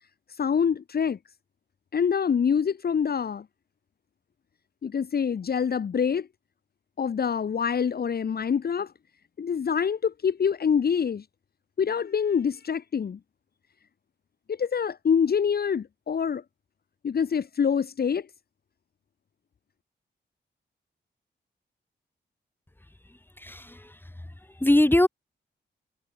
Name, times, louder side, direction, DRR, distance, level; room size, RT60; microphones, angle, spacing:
voice 1, 0.4-1.2 1.9-3.4 4.8-6.3 7.0-8.9 9.4-11.2 11.8-13.2 14.5-16.4 17.0-18.3, left 7 dB, 55° left, 1.1 m, -25 dB
voice 2, 23.4-23.9 24.6-25.1, left 1 dB, 10° left, 1.7 m, -21 dB
cardioid pair, 70°, 19 cm